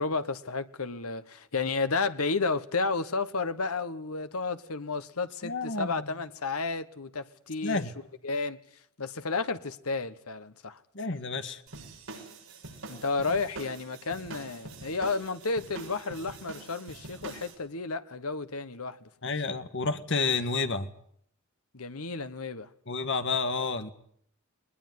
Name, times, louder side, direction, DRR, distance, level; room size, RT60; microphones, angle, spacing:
voice 1, 0.0-7.8 8.2-8.6 9.0-10.8 12.9-19.3 21.7-22.7, left 4 dB, 85° left, 1.3 m, -32 dB
voice 2, 5.4-5.9 7.6-7.9 10.9-11.6 19.2-20.9 22.9-23.9, left 4 dB, 55° left, 1.7 m, -30 dB
surf-loud-loop, 11.7-17.5, right 2 dB, 65° right, 6.7 m, -44 dB
21.0 x 20.5 x 9.5 m
head